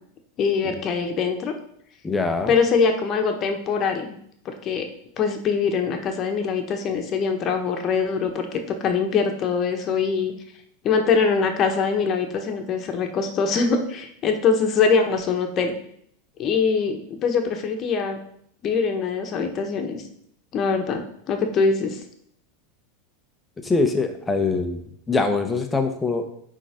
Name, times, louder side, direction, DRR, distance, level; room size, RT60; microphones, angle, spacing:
voice 1, 0.4-1.5 2.5-4.1 4.4-4.9 5.2-10.3 10.8-15.7 16.4-18.2 18.6-20.0 20.5-21.0 21.3-22.0, left 5 dB, 40° left, 4 dB, 1.4 m, -23 dB
voice 2, 2.0-2.5 23.6-26.2, left 3 dB, 15° left, 6 dB, 1.1 m, -23 dB
9.9 x 3.9 x 5.1 m, 0.70 s
hypercardioid pair, 115°, 0 cm